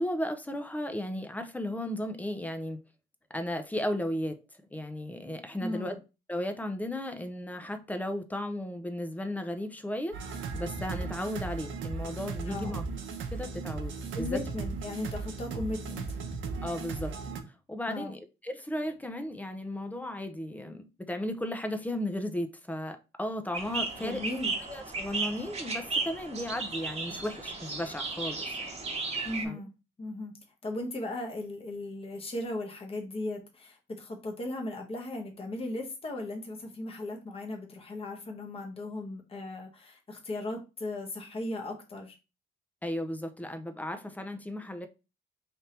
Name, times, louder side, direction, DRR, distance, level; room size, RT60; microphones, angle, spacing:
voice 1, 0.0-2.8 3.3-4.4 4.7-6.0 6.3-12.8 13.3-14.4 16.6-17.1 17.7-24.2 24.6-28.5 29.4-29.6 42.8-44.9, left 1 dB, 10° left, 0.6 m, -35 dB
voice 2, 5.6-6.0 12.5-12.8 14.1-16.2 17.9-18.1 24.0-24.5 29.2-29.7 30.0-30.4 30.6-42.2, left 2 dB, 30° left, 1.0 m, -37 dB
sound 1, 10.1-17.4, right 4 dB, 75° right, 0.7 m, -37 dB
sound 2, 23.5-29.4, right 3 dB, 35° right, 1.2 m, -35 dB
3.4 x 2.7 x 4.3 m
cardioid pair, 90°, 20 cm